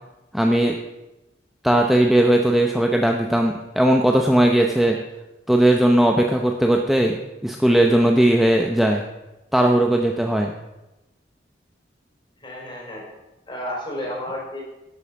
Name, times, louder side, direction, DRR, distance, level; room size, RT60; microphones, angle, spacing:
voice 1, 0.3-0.8 1.6-5.0 5.5-9.0 9.5-10.5, right 1 dB, ahead, 2 dB, 0.7 m, -18 dB
voice 2, 12.4-13.0 13.5-14.6, left 1 dB, 30° left, -3 dB, 4.8 m, -31 dB
11.5 x 8.0 x 6.4 m, 0.99 s
head